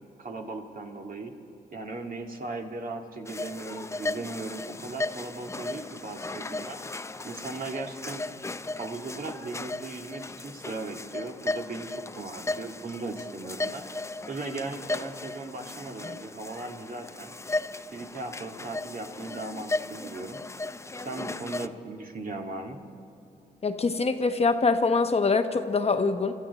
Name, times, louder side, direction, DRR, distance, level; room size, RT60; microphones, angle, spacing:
voice 1, 0.2-1.3 1.7-6.8 7.2-8.3 8.8-11.9 12.2-13.8 14.3-17.3 17.9-20.4 21.0-22.8, right 3 dB, 50° right, 2 dB, 2.0 m, -37 dB
sound 1, 3.3-21.7, left 2 dB, 15° left, 0.5 m, -36 dB
voice 2, 23.6-26.3, left 4 dB, 35° left, 7 dB, 1.0 m, -24 dB
26.0 x 13.0 x 4.1 m, 2.7 s
supercardioid pair, 60°, 18 cm